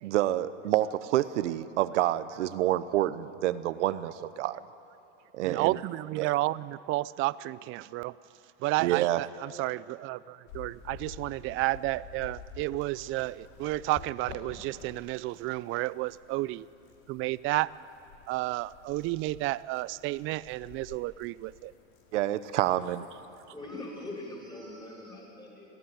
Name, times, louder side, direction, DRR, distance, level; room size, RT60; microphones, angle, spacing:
voice 1, 0.0-4.6 5.3-5.8 6.2-6.3 8.8-9.2 22.1-23.1, right 14 dB, 80° right, 14 dB, 0.9 m, -28 dB
voice 2, 5.4-8.2 8.6-16.7 17.1-17.7 18.3-21.7, right 19 dB, 35° right, 20 dB, 0.4 m, -31 dB
sound 1, 10.5-23.5, left 5 dB, 50° left, 3.4 m, -50 dB
voice 3, 23.5-25.8, left 2 dB, 10° left, -1 dB, 5.8 m, -42 dB
21.0 x 14.5 x 9.2 m, 2.8 s
supercardioid pair, 120°, 36 cm